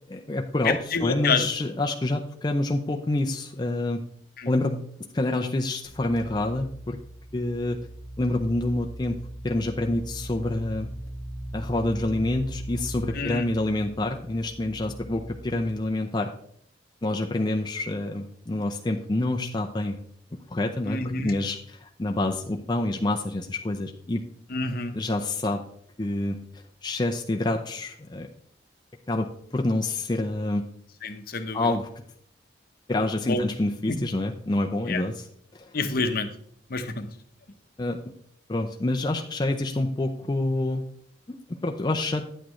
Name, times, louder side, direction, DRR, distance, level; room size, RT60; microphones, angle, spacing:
voice 1, 0.1-4.0 4.5-4.8 5.1-7.0 7.3-7.8 8.2-9.2 9.4-10.9 11.5-16.3 17.0-20.0 20.5-24.2 24.9-25.6 26.0-26.4 26.8-28.3 29.1-30.7 31.5-31.9 32.9-35.3 35.5-35.7 37.8-38.0 38.5-40.8 41.5-42.2, left 2 dB, 25° left, 2 dB, 0.5 m, -27 dB
voice 2, 0.6-1.5 4.4-4.5 13.1-13.4 20.9-21.3 24.5-24.9 31.0-31.7 33.2-33.4 33.9-34.0 34.9-35.0 35.7-36.3 36.7-37.1, left 4 dB, 55° left, 8 dB, 0.8 m, -28 dB
sound 1, 5.8-15.8, right 1 dB, 80° right, 3.1 m, -39 dB
10.0 x 8.3 x 3.1 m, 0.66 s
head